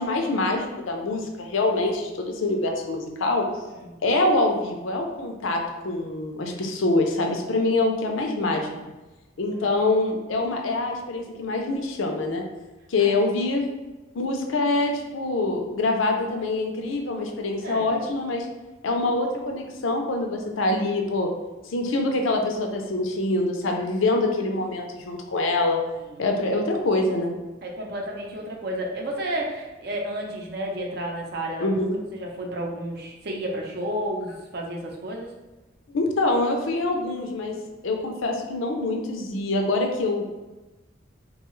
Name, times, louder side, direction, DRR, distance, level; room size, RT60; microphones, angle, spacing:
voice 1, 0.0-3.5 4.0-8.7 9.4-12.4 12.9-13.6 14.1-18.5 18.8-21.3 21.6-25.8 26.2-27.4 31.6-32.0 35.9-37.6 37.8-40.4, left 2 dB, 85° left, 2 dB, 0.5 m, -25 dB
voice 2, 3.6-4.0 9.5-9.7 13.0-13.1 17.6-18.0 26.2-26.3 27.6-31.8 32.1-35.3, right 1 dB, 55° right, 0 dB, 0.6 m, -32 dB
3.5 x 2.3 x 3.1 m, 1.1 s
head